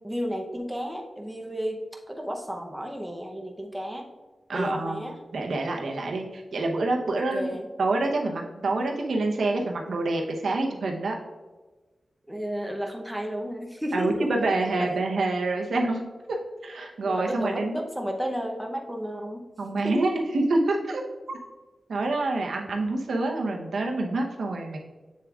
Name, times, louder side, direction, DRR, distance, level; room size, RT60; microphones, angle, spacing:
voice 1, 0.0-4.1 4.5-5.2 7.1-7.7 12.3-14.3 14.8-14.9 17.0-19.4 19.8-20.2, equal, 5° right, 0 dB, 0.7 m, -32 dB
voice 2, 4.5-5.0 5.3-11.1 13.9-17.8 19.6-21.0 21.3-21.4 21.9-24.8, right 2 dB, 80° right, 1 dB, 0.8 m, -27 dB
7.5 x 6.9 x 2.3 m, 1.2 s
wide cardioid pair, 160°, 0 cm